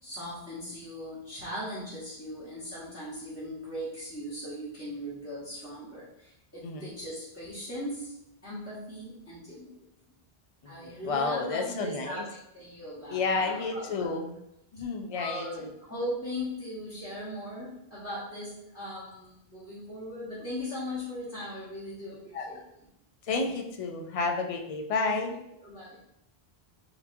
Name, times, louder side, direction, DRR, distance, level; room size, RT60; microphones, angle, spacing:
voice 1, 0.0-8.1 8.4-9.7 10.6-14.2 15.1-22.6 25.6-26.0, equal, 15° left, -11 dB, 1.0 m, -39 dB
voice 2, 10.6-12.2 13.1-14.3 14.7-15.7 22.3-22.6 23.3-25.3, left 4 dB, 50° left, 3 dB, 0.4 m, -31 dB
4.3 x 2.8 x 2.6 m, 0.80 s
omnidirectional pair, 1.0 m